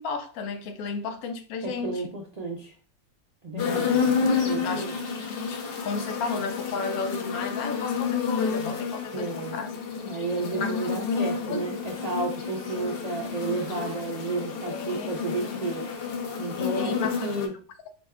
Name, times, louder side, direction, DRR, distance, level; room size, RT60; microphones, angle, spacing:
voice 1, 0.0-2.0 3.5-3.9 4.6-4.9 5.3-9.7 10.5-10.7 11.4-11.8 14.7-15.4 16.6-17.5, left 4 dB, 80° left, 7 dB, 1.1 m, -33 dB
voice 2, 1.6-2.7 3.4-3.9 4.4-4.9 9.1-9.6 10.0-15.9 16.4-17.5, right 3 dB, 65° right, 0 dB, 0.4 m, -32 dB
sound 1, 3.6-17.5, left 5 dB, 55° left, 0.7 m, -30 dB
4.9 x 2.1 x 3.5 m, 0.39 s
omnidirectional pair, 1.5 m